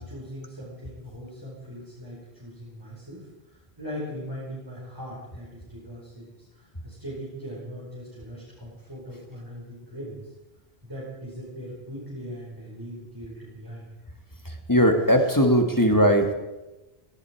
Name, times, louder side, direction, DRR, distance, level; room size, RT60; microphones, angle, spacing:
voice 1, 0.0-3.3 3.8-10.2 10.8-13.9, equal, 20° right, -7 dB, 5.0 m, -40 dB
voice 2, 14.7-16.3, equal, 20° left, 4 dB, 1.7 m, -19 dB
18.5 x 16.5 x 4.6 m, 1.1 s
omnidirectional pair, 1.0 m